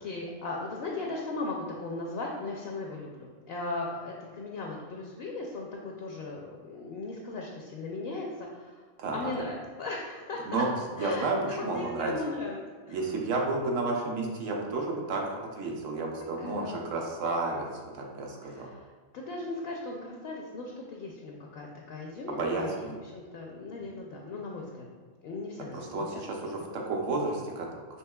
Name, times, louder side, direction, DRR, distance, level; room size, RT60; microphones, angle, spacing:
voice 1, 0.0-8.8 9.1-10.6 11.0-13.1 16.4-16.8 18.4-18.8 19.1-22.9 23.1-24.9 25.2-26.2, left 2 dB, 65° left, 0 dB, 0.6 m, -37 dB
voice 2, 9.0-9.3 10.5-12.1 12.9-15.2 15.5-18.7 22.3-23.0 25.7-27.7, right 3 dB, 70° right, 0 dB, 1.0 m, -31 dB
5.7 x 3.1 x 2.2 m, 1.4 s
omnidirectional pair, 1.4 m